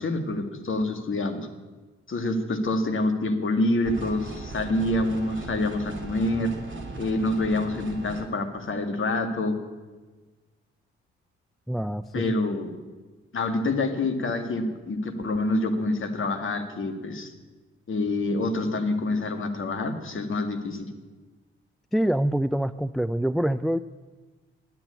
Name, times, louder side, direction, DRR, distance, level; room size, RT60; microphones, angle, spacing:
voice 1, 0.0-1.5 2.1-6.5 7.0-9.6 12.1-12.7 13.3-17.3 17.9-20.9, left 2 dB, 40° left, 6 dB, 2.0 m, -27 dB
sound 1, 3.8-8.2, right 3 dB, 40° right, 2.6 m, -38 dB
voice 2, 11.7-12.2 21.9-23.8, right 1 dB, ahead, 14 dB, 0.3 m, -25 dB
12.0 x 10.5 x 8.6 m, 1.3 s
figure-of-eight pair, 40°, 32 cm